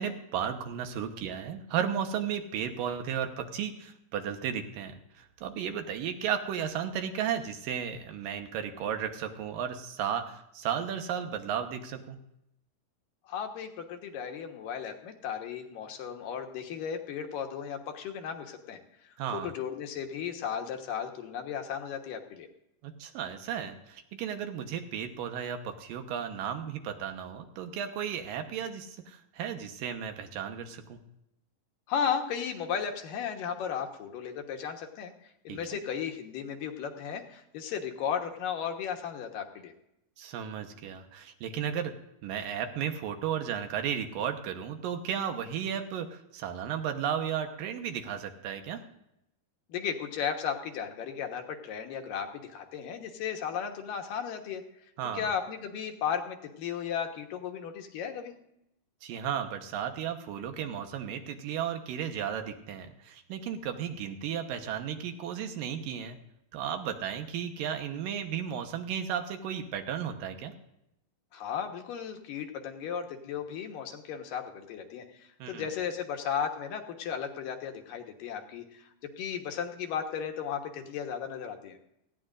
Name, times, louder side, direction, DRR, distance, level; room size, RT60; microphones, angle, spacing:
voice 1, 0.0-12.2 19.2-19.5 22.8-31.0 35.5-35.6 40.2-41.9 42.2-48.8 55.0-55.3 59.0-66.2 66.5-70.5 75.4-75.7, right 8 dB, 75° right, 6 dB, 2.7 m, -34 dB
voice 2, 13.3-18.8 19.0-22.5 31.9-39.7 49.7-54.6 55.1-58.3 71.3-78.9 79.2-81.8, left 7 dB, 75° left, 4 dB, 2.8 m, -35 dB
18.5 x 15.5 x 2.5 m, 0.82 s
omnidirectional pair, 4.1 m